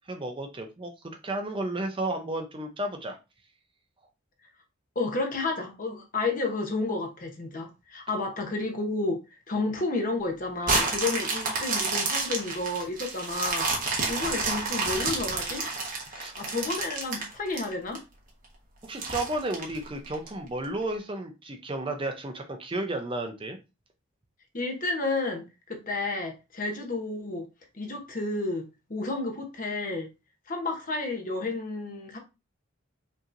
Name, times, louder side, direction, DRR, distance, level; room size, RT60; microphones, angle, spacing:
voice 1, 0.1-3.2 16.1-16.3 18.8-23.6, right 1 dB, 25° right, 0.5 m, -33 dB
voice 2, 4.9-9.2 9.5-13.7 14.1-15.6 16.1-18.0 24.5-27.5 27.7-30.1 30.5-32.2, left 3 dB, 40° left, 0.9 m, -31 dB
sound 1, 10.6-18.0 18.4-18.5 19.0-20.3 20.8-20.9, right 3 dB, 40° right, 1.2 m, -29 dB
5.3 x 2.9 x 2.5 m
head